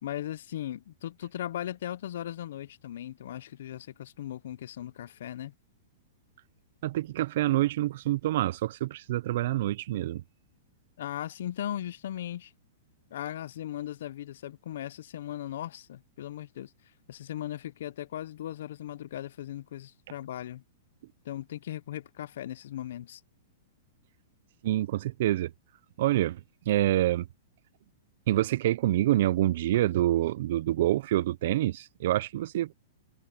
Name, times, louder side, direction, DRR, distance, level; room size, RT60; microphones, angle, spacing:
voice 1, 0.0-5.5 11.0-12.5 13.1-16.7 17.1-20.6 21.2-23.2, left 12 dB, 60° left, 0.5 m, -38 dB
voice 2, 6.8-10.2 24.6-25.5 26.0-26.4 26.7-27.3 28.3-32.7, right 14 dB, 50° right, 0.3 m, -26 dB
supercardioid pair, 175°, 0 cm